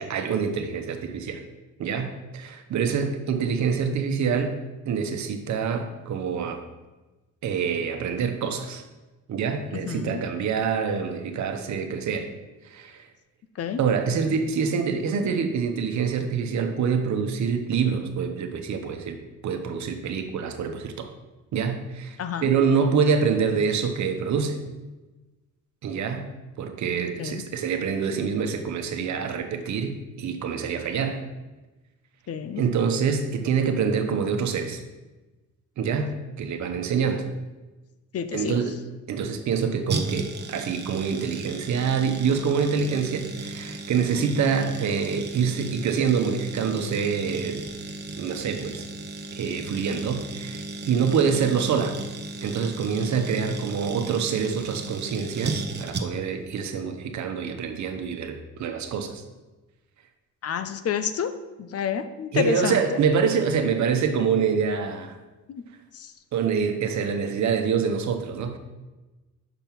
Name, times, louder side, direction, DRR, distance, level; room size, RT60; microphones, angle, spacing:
voice 1, 0.0-1.4 1.8-4.6 4.9-6.6 7.4-8.8 9.3-12.3 12.6-13.1 13.8-19.2 19.4-21.1 21.5-24.6 25.8-26.3 26.6-31.2 32.5-34.8 35.8-37.3 38.3-38.7 39.1-47.6 48.2-48.9 49.3-52.0 52.4-59.2 62.3-65.1 66.3-68.6, right 6 dB, 70° right, 6 dB, 1.0 m, -26 dB
voice 2, 9.9-10.2 13.6-13.8 22.2-22.5 27.2-27.4 32.3-32.6 38.1-38.6 60.4-61.3 61.6-63.0 65.5-65.6 65.9-66.1, left 7 dB, 50° left, 10 dB, 0.7 m, -29 dB
sound 1, 39.9-56.4 56.6-56.7, right 3 dB, 35° right, 0.8 m, -35 dB
6.0 x 5.3 x 5.9 m, 1.1 s
cardioid pair, 90°, 30 cm